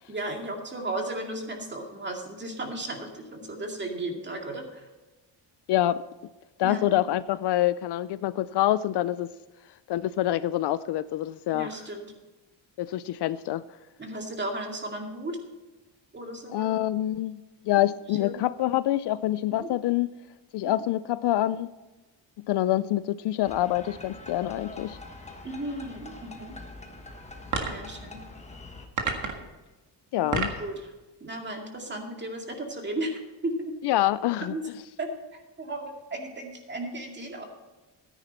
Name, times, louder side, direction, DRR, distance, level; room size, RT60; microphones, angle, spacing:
voice 1, 0.1-4.9 6.6-7.0 11.5-12.1 14.0-15.4 16.1-16.7 18.1-18.5 19.5-19.7 20.6-20.8 25.4-26.6 27.6-28.2 30.2-30.3 30.6-30.9 31.2-33.7 34.5-34.6 35.0-37.4, right 1 dB, 25° right, 2 dB, 2.2 m, -35 dB
voice 2, 5.7-6.0 6.6-9.3 9.9-11.9 12.8-13.6 16.5-17.4 17.7-20.1 20.5-21.7 22.5-25.0 30.1-30.5 33.8-34.5, left 14 dB, 65° left, 16 dB, 0.5 m, -26 dB
sound 1, 23.4-28.9, left 2 dB, 15° left, 1.3 m, -44 dB
sound 2, 27.5-27.9 29.0-29.5 30.1-30.7, right 4 dB, 45° right, 1.8 m, -29 dB
13.5 x 10.0 x 4.3 m, 1.1 s
cardioid pair, 135°, 44 cm